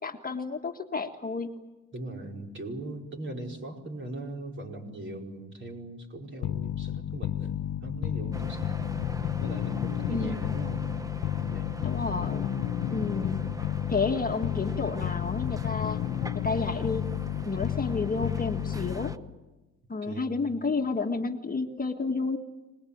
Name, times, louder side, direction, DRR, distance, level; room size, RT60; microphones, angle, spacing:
voice 1, 0.0-1.5 10.1-10.6 11.8-13.5 13.9-16.0 16.4-17.1 17.4-19.1 19.9-22.4, left 4 dB, 30° left, 4 dB, 1.7 m, -31 dB
voice 2, 1.9-8.7 9.4-10.9 11.2-11.8 20.0-20.5, right 2 dB, 40° right, 1 dB, 5.1 m, -40 dB
sound 1, 6.4-19.3, left 12 dB, 70° left, 0.8 m, -32 dB
sound 2, 8.3-19.2, right 1 dB, 10° right, 1.1 m, -42 dB
26.0 x 20.0 x 8.7 m, 1.1 s
cardioid pair, 90°, 30 cm